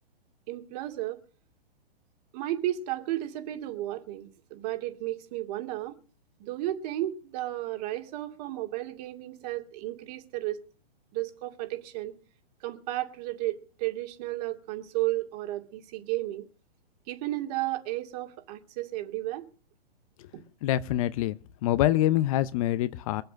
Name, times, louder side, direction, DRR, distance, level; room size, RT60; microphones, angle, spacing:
voice 1, 0.5-1.2 2.3-6.0 6.4-10.6 11.1-12.1 12.6-16.4 17.1-19.5, right 15 dB, 40° right, 2.4 m, -33 dB
voice 2, 20.6-23.2, left 13 dB, 35° left, 0.6 m, -25 dB
22.0 x 7.9 x 6.4 m
hypercardioid pair, 130°, 31 cm